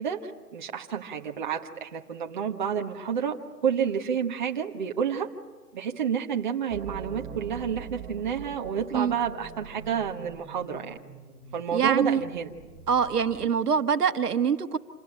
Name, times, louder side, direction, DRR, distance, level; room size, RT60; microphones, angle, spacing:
voice 1, 0.0-3.4 3.6-5.3 5.7-11.0 11.5-12.5, right 7 dB, 30° right, 1 dB, 1.4 m, -30 dB
sound 1, 6.7-13.6, right 6 dB, 10° right, 3.0 m, -43 dB
voice 2, 11.7-12.2 12.9-14.8, right 7 dB, 75° right, 8 dB, 1.6 m, -24 dB
27.5 x 20.0 x 8.8 m, 1.3 s
hypercardioid pair, 170°, 47 cm